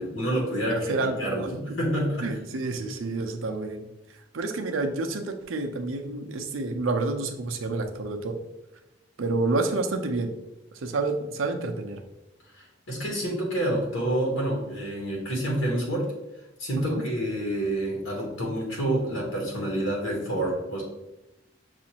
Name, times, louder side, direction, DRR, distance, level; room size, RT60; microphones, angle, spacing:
voice 1, 0.0-2.3 12.5-16.1 16.6-20.8, right 1 dB, 85° left, -2 dB, 1.1 m, -28 dB
voice 2, 0.7-1.5 2.2-3.9 4.3-8.4 9.2-10.3 10.7-12.0 16.9-17.0, right 3 dB, 90° right, 5 dB, 0.5 m, -29 dB
6.2 x 2.5 x 2.8 m, 0.95 s
head